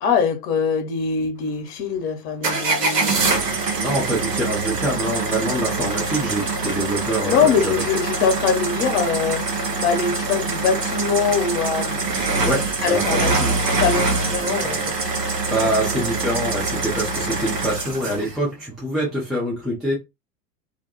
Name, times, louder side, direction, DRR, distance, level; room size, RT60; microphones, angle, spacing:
voice 1, 0.0-3.6 7.2-9.4 9.8-12.0 12.8-15.0 15.6-15.9 17.0-17.2, left 6 dB, 45° left, 0.8 m, -23 dB
sound 1, 2.4-18.4, right 3 dB, 80° right, 0.9 m, -24 dB
voice 2, 3.8-7.8 12.4-13.3 15.5-19.9, right 1 dB, ahead, 0.3 m, -25 dB
2.5 x 2.1 x 2.8 m
figure-of-eight pair, 85°, 47 cm